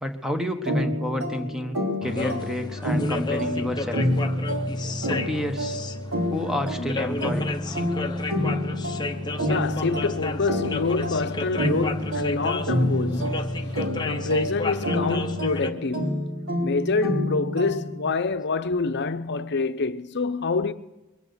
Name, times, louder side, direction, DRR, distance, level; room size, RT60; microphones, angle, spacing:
voice 1, 0.0-4.0 5.1-5.8 6.3-7.5, left 1 dB, ahead, 1.2 m, -30 dB
sound 1, 0.7-18.1, left 1 dB, 65° right, 3.7 m, -28 dB
sound 2, 2.0-15.7, left 2 dB, 20° left, 0.8 m, -32 dB
voice 2, 9.5-13.6 14.0-16.3 16.6-20.7, left 3 dB, 55° left, 0.8 m, -26 dB
23.0 x 8.6 x 6.8 m
head